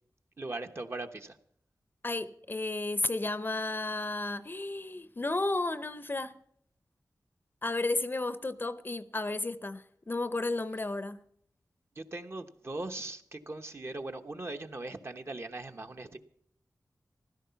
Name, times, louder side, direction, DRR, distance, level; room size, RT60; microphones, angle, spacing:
voice 1, 0.4-1.4 12.0-16.2, right 2 dB, 40° right, 1.0 m, -39 dB
voice 2, 2.0-6.4 7.6-11.2, left 2 dB, 30° left, 0.6 m, -33 dB
15.5 x 12.5 x 5.7 m
wide cardioid pair, 105°, 6 cm